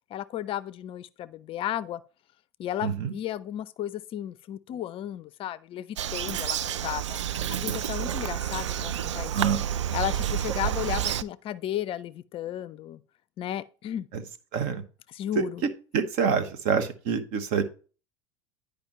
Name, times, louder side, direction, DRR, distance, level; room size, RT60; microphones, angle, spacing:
voice 1, 0.1-2.0 2.6-7.2 7.5-9.3 9.9-13.0 13.4-14.1 15.1-15.6, left 12 dB, 40° left, 0.4 m, -34 dB
voice 2, 2.8-3.1 7.4-8.2 9.3-9.6 14.1-14.2 14.5-14.8 15.3-15.4 15.9-17.6, right 6 dB, 55° right, 1.1 m, -27 dB
Bird vocalization bird call bird song, 6.0-11.2, right 11 dB, 80° right, 0.4 m, -30 dB
10.5 x 5.0 x 3.0 m
hypercardioid pair, 85°, 15 cm